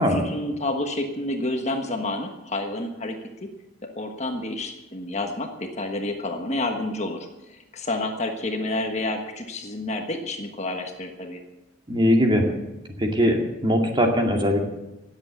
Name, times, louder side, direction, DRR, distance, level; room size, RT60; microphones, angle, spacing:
voice 1, 0.0-3.2 3.9-11.4, left 2 dB, 35° left, 4 dB, 1.4 m, -29 dB
voice 2, 11.9-12.5 13.0-14.7, equal, 25° right, 2 dB, 2.3 m, -20 dB
17.5 x 8.2 x 8.2 m, 0.99 s
head